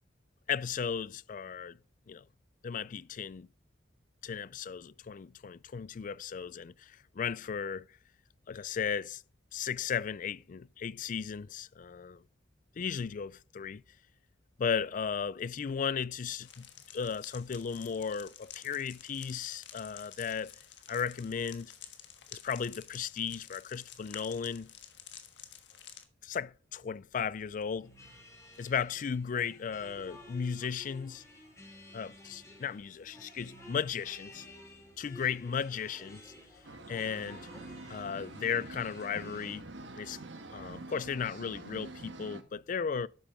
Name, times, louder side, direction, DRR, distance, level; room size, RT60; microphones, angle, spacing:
voice 1, 0.5-1.8 2.1-2.2 2.6-3.5 4.2-7.9 8.5-9.2 9.5-12.2 12.8-13.8 14.6-16.7 16.9-20.5 20.9-21.7 22.3-24.7 26.2-27.9 28.6-31.2 31.9-34.5 35.0-36.3 36.9-37.5 37.9-39.6 39.9-40.2 40.5-43.1, left 7 dB, 45° left, 0.4 m, -35 dB
sound 1, 16.4-26.0, left 9 dB, 70° left, 1.4 m, -51 dB
sound 2, 27.8-39.6, left 1 dB, 20° left, 4.5 m, -53 dB
sound 3, 36.6-42.4, right 2 dB, 80° right, 1.3 m, -46 dB
12.0 x 8.8 x 3.6 m
head